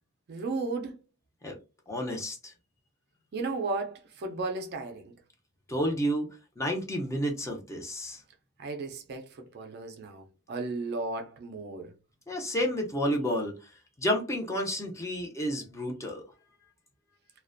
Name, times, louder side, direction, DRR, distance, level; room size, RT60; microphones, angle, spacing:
voice 1, 0.3-1.0 3.3-5.1 8.6-11.9, right 3 dB, 50° right, 0.4 m, -35 dB
voice 2, 1.9-2.5 5.7-6.3 6.6-8.2 12.3-13.6 14.0-16.2, equal, 15° left, 0.5 m, -30 dB
2.4 x 2.1 x 2.4 m
head